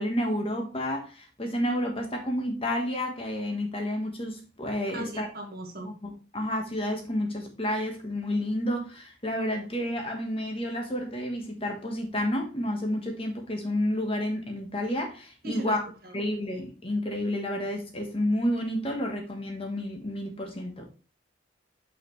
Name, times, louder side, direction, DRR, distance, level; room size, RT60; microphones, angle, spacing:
voice 1, 0.0-5.3 5.8-15.9 16.1-20.9, left 1 dB, 30° left, 1.4 m, -30 dB
voice 2, 4.9-5.9 15.4-15.8 16.0-16.1, right 1 dB, 50° right, 1.7 m, -38 dB
6.9 x 5.7 x 3.2 m
head